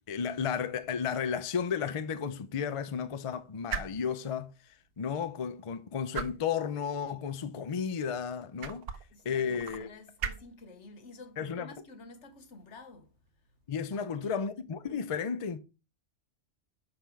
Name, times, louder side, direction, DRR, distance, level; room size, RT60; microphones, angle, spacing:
voice 1, 0.1-4.5 5.0-8.8 9.2-9.9 11.4-11.7 13.7-15.6, left 7 dB, 40° left, 0.5 m, -33 dB
sound 1, 0.7-14.2, right 7 dB, 60° right, 0.9 m, -45 dB
voice 2, 9.1-13.2 13.9-14.4, left 3 dB, 80° left, 1.4 m, -51 dB
6.8 x 5.4 x 4.5 m
omnidirectional pair, 1.2 m